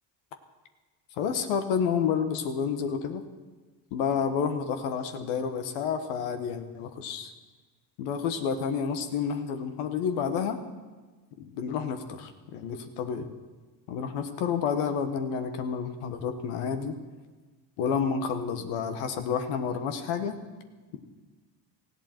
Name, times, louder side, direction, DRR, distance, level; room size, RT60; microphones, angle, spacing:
voice 1, 1.2-3.2 3.9-7.3 8.0-10.6 11.4-13.3 13.9-17.0 17.8-20.3, left 6 dB, 90° left, 8 dB, 1.5 m, -30 dB
19.0 x 14.5 x 4.5 m, 1.3 s
supercardioid pair, 85°, 49 cm